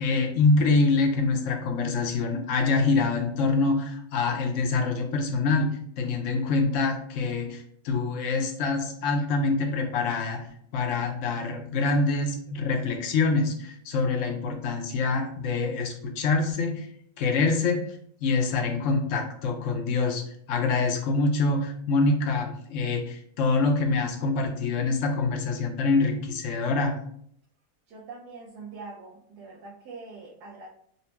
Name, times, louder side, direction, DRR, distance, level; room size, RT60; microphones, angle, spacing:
voice 1, 0.0-10.5 10.7-16.9 17.2-20.2 20.5-27.0, left 3 dB, 70° left, 3 dB, 0.8 m, -25 dB
voice 2, 27.9-30.7, right 3 dB, 80° right, -5 dB, 1.3 m, -43 dB
4.1 x 2.1 x 2.8 m, 0.66 s
omnidirectional pair, 1.7 m